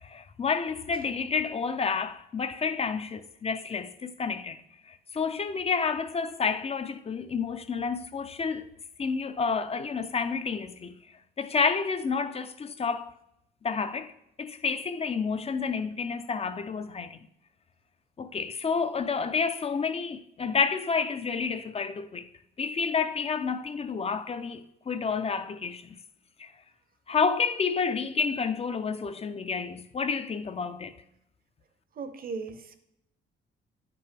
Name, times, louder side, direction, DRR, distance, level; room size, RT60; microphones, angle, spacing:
voice 1, 0.0-4.6 4.9-8.7 9.0-11.0 11.4-13.1 13.6-14.1 14.4-17.2 18.2-22.3 22.6-26.0 26.4-26.5 27.1-30.9, left 5 dB, 30° left, 0.5 m, -30 dB
voice 2, 32.0-32.8, right 4 dB, 50° right, 0.8 m, -38 dB
9.5 x 6.0 x 3.3 m
cardioid pair, 90°, 20 cm